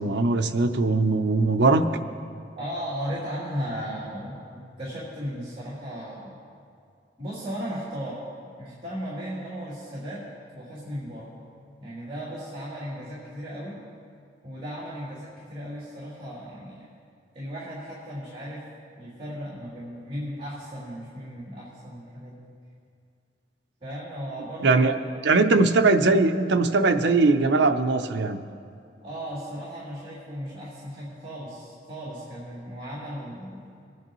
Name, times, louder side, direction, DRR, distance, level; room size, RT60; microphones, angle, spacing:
voice 1, 0.0-1.8 24.6-24.9 25.2-28.4, right 3 dB, 65° right, 7 dB, 0.6 m, -20 dB
voice 2, 2.6-6.3 7.2-8.3 8.6-10.2 10.5-11.3 11.8-13.8 14.4-16.9 17.3-18.6 19.0-22.4 23.8-25.1 29.0-33.6, equal, 30° right, -10 dB, 2.9 m, -36 dB
21.5 x 9.4 x 3.1 m, 2.4 s
head